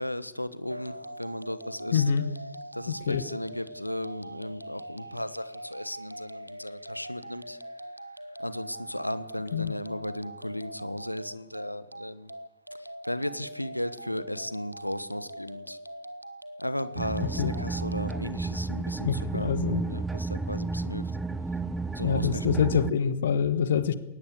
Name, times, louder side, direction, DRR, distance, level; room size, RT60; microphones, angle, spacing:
voice 1, 0.0-2.1 2.7-7.6 8.4-12.3 12.8-15.8 16.6-21.1 21.9-22.7 23.0-23.1, left 1 dB, 90° left, 16 dB, 1.1 m, -35 dB
sound 1, 0.7-18.2, right 1 dB, 85° right, 1.3 m, -43 dB
voice 2, 1.9-2.2 3.1-3.2 9.5-9.7 17.4-17.5 19.0-19.8 22.0-23.9, left 7 dB, 65° left, 13 dB, 1.5 m, -25 dB
sound 2, 17.0-22.9, right 3 dB, 10° right, 1.0 m, -32 dB
21.5 x 19.0 x 8.4 m, 1.0 s
figure-of-eight pair, 90°, 0 cm